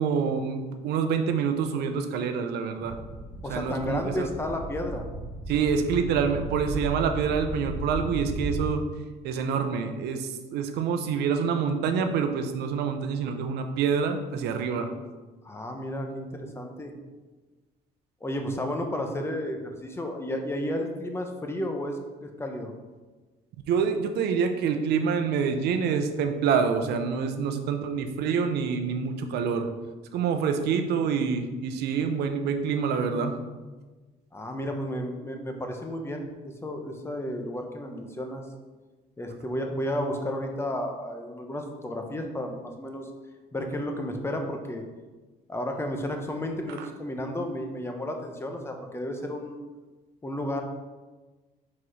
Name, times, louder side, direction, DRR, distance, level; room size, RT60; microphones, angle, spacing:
voice 1, 0.0-2.9 3.5-4.3 5.5-8.8 9.2-14.9 23.7-29.7 30.1-33.3 46.8-46.9, right 6 dB, 75° right, 7 dB, 0.7 m, -26 dB
sound 1, 2.8-8.7, right 1 dB, 35° right, 1.6 m, -35 dB
voice 2, 3.4-5.0 14.7-14.9 15.4-16.9 18.2-22.7 34.3-38.4 39.2-43.1 43.5-44.8 45.5-49.6 50.2-50.6, left 1 dB, 15° left, 3 dB, 0.8 m, -32 dB
4.8 x 4.2 x 4.8 m, 1.3 s
cardioid pair, 110°, 17 cm